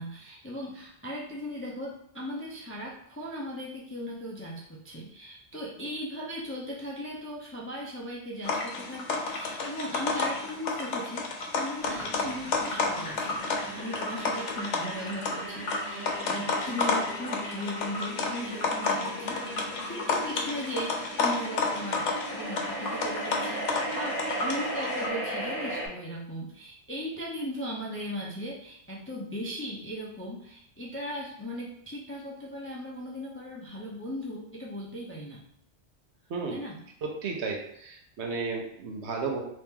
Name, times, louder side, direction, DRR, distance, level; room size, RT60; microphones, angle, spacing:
voice 1, 0.0-22.1 22.4-35.4 36.5-36.8, equal, 20° left, -4 dB, 0.4 m, -38 dB
sound 1, 8.4-25.1, left 4 dB, 90° left, 0.9 m, -31 dB
sound 2, 11.8-25.9, right 1 dB, 30° right, 1.5 m, -37 dB
voice 2, 37.0-39.4, right 4 dB, 75° right, 1 dB, 1.0 m, -33 dB
3.1 x 2.9 x 3.5 m, 0.71 s
omnidirectional pair, 1.2 m